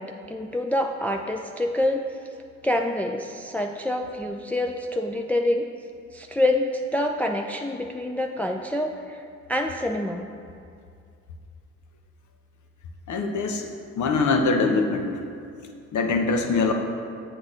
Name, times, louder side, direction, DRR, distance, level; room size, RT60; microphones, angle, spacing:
voice 1, 0.0-2.1 2.6-5.6 6.1-9.2 9.5-10.3, left 1 dB, 5° left, 2 dB, 0.5 m, -26 dB
voice 2, 13.1-13.7 14.0-15.1 15.9-16.7, left 4 dB, 65° left, 4 dB, 0.9 m, -23 dB
7.8 x 6.6 x 3.8 m, 2.4 s
hypercardioid pair, 45°, 32 cm